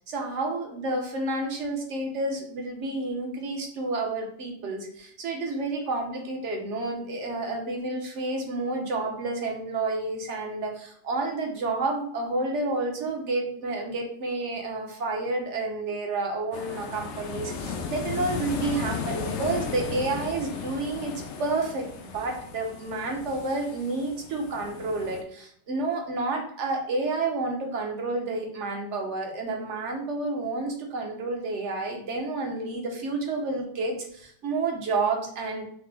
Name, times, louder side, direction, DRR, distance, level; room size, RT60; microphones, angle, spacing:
voice 1, 0.1-35.6, right 2 dB, 55° right, 2 dB, 1.0 m, -30 dB
sound 1, 16.5-25.2, left 5 dB, 90° left, 0.6 m, -35 dB
5.8 x 2.1 x 3.3 m, 0.63 s
omnidirectional pair, 1.8 m